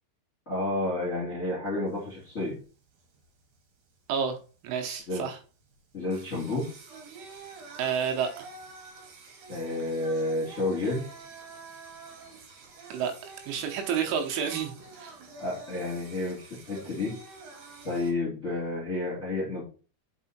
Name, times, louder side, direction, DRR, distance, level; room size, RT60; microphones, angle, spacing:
voice 1, 0.5-2.6 5.1-5.3 5.9-6.7 9.5-11.1 15.4-17.2 17.8-19.6, left 2 dB, 25° left, -5 dB, 2.3 m, -30 dB
Singing, 1.9-18.1, right 4 dB, 55° right, 3.0 m, -48 dB
voice 2, 4.6-5.4 7.8-8.5 12.9-13.1 13.5-15.2, right 7 dB, 90° right, 4 dB, 3.5 m, -30 dB
6.1 x 5.5 x 4.3 m, 0.37 s
omnidirectional pair, 5.5 m